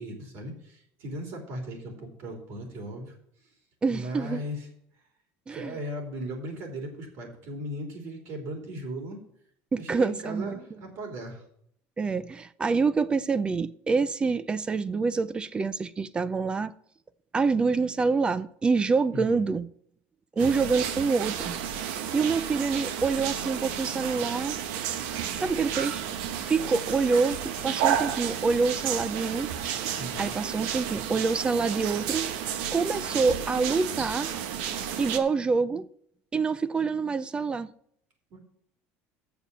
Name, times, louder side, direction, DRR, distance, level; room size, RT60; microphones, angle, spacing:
voice 1, 0.0-3.1 3.9-4.7 5.5-9.2 9.8-11.4 19.1-19.4 20.4-20.7 30.0-30.3 38.3-38.4, right 1 dB, 60° right, 3.1 m, -37 dB
voice 2, 3.8-4.4 5.5-5.8 9.7-10.6 12.0-16.7 17.3-19.7 20.4-21.6 21.9-24.6 25.4-26.0 26.4-29.5 30.2-32.3 32.7-34.3 35.0-35.9 36.3-37.7, right 4 dB, 20° right, 0.4 m, -26 dB
sound 1, 20.4-35.2, right 9 dB, 85° right, 1.0 m, -32 dB
7.1 x 6.9 x 7.4 m
cardioid pair, 140°, 5 cm